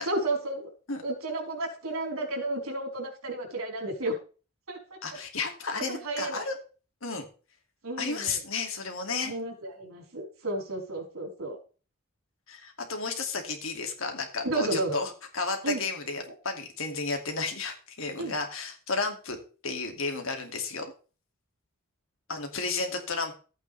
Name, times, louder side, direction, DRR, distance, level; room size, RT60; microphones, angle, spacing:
voice 1, 0.0-0.7 1.0-4.2 4.7-4.8 5.1-5.2 5.9-6.4 7.8-8.4 9.2-11.6 14.4-15.0 15.6-15.8 18.2-18.3, right 2 dB, 70° right, 0 dB, 4.2 m, -32 dB
voice 2, 5.0-6.6 7.0-7.2 8.0-9.3 12.5-19.4 19.6-20.9 22.3-23.3, left 4 dB, 65° left, 4 dB, 2.5 m, -32 dB
14.0 x 9.0 x 3.4 m, 0.37 s
head